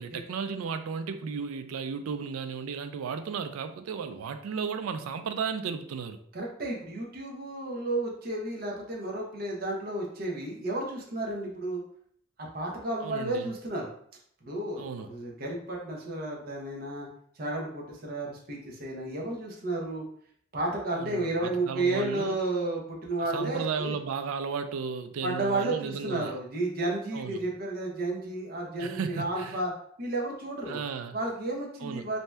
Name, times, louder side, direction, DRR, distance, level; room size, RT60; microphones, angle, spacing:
voice 1, 0.0-6.2 13.0-13.5 14.8-15.1 21.0-22.4 23.3-26.3 27.1-27.4 28.8-29.6 30.7-31.2 31.8-32.1, right 6 dB, 85° right, 9 dB, 0.3 m, -34 dB
voice 2, 6.3-11.8 12.5-13.9 14.4-17.1 17.4-20.0 20.5-23.9 25.2-29.7 30.0-30.8 31.1-32.2, right 2 dB, 45° right, -1 dB, 0.6 m, -32 dB
2.7 x 2.2 x 3.2 m, 0.64 s
head